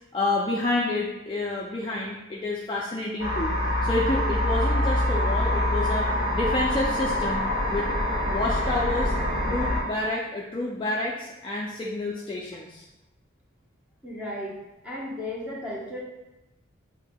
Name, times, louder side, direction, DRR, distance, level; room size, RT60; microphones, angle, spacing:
voice 1, 0.1-7.4 7.7-7.9 8.3-9.1 9.5-12.8, left 2 dB, 25° left, -4 dB, 0.3 m, -29 dB
sound 1, 3.2-9.8, left 1 dB, 55° right, 1.3 m, -25 dB
voice 2, 14.0-14.6 14.8-16.0, left 1 dB, 5° right, -7 dB, 0.9 m, -34 dB
6.5 x 2.6 x 2.2 m, 0.98 s
head